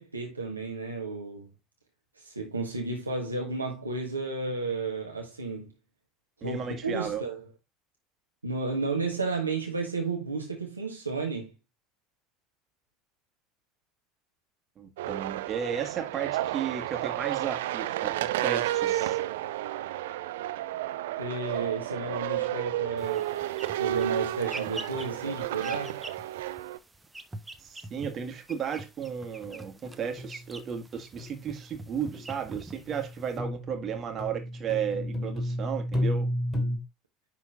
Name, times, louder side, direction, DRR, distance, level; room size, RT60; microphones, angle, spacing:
voice 1, 0.0-1.5 2.2-5.7 6.4-7.4 8.4-11.5 21.2-23.3 23.8-26.0, right 3 dB, 85° right, 1.4 m, -32 dB
voice 2, 6.4-7.2 14.8-18.2 18.4-19.2 27.6-36.3, right 7 dB, 35° right, 1.9 m, -34 dB
sound 1, 15.0-26.8, right 14 dB, 65° right, 0.5 m, -31 dB
sound 2, 23.0-33.4, right 2 dB, 10° right, 0.9 m, -46 dB
sound 3, 29.0-29.6 29.8-29.9 30.2-30.5 31.2-31.5 32.1-32.3 32.9-36.8, left 1 dB, 20° left, 2.8 m, -32 dB
10.5 x 3.8 x 3.7 m
figure-of-eight pair, 70°, 0 cm